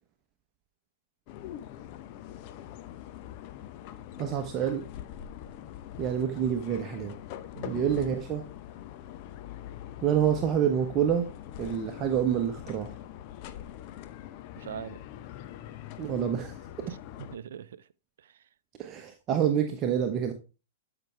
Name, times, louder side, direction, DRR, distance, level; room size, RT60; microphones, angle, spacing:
sound 1, 1.3-17.4, left 11 dB, 45° left, 0.8 m, -43 dB
voice 1, 4.2-4.9 6.0-7.1 7.6-8.4 10.0-11.3 11.6-12.9 16.0-16.6 18.8-20.3, right 9 dB, 30° right, 1.1 m, -27 dB
voice 2, 7.5-7.9 14.6-15.0 16.9-17.9 18.2-18.5, right 9 dB, 65° right, 0.6 m, -43 dB
12.0 x 5.9 x 3.4 m
figure-of-eight pair, 110°, 0 cm